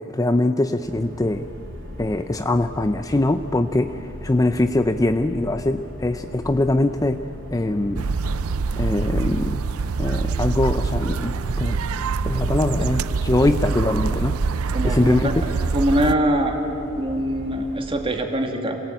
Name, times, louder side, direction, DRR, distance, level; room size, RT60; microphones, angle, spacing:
voice 1, 0.0-1.5 2.0-7.2 7.5-8.1 8.8-9.6 10.0-11.8 12.2-14.4 14.8-15.4, left 1 dB, 15° left, 8 dB, 0.5 m, -22 dB
sound 1, 0.8-17.9, equal, 65° right, 3.4 m, -38 dB
sound 2, 8.0-16.2, right 4 dB, 85° right, 0.5 m, -25 dB
voice 2, 14.7-15.2 15.7-16.6 17.0-18.8, right 1 dB, 25° right, 3 dB, 2.4 m, -23 dB
27.0 x 18.5 x 9.0 m, 3.0 s
head